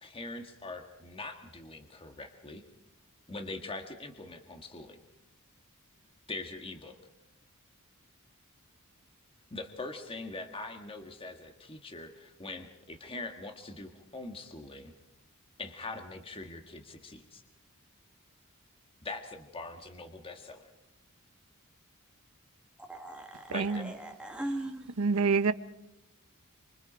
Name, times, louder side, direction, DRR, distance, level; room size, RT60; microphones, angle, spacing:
voice 1, 0.0-2.6 3.3-5.0 6.3-7.0 9.5-14.9 15.6-17.4 19.0-20.7 23.5-23.9, left 2 dB, 25° left, 1.6 m, -42 dB
voice 2, 22.8-24.9, right 1 dB, 5° right, 1.7 m, -39 dB
voice 3, 23.5-23.9 25.0-25.5, right 4 dB, 70° right, 0.8 m, -26 dB
28.0 x 25.0 x 5.1 m
head